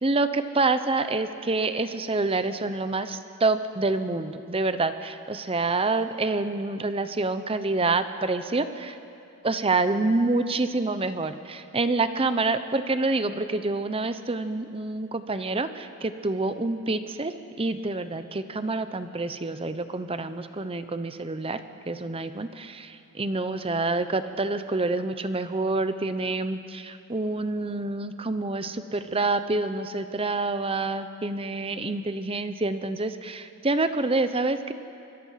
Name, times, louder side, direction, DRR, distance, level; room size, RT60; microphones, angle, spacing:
voice 1, 0.0-9.0 9.4-21.6 21.9-34.7, right 3 dB, 25° right, 11 dB, 0.8 m, -27 dB
25.0 x 22.5 x 5.8 m, 2.6 s
head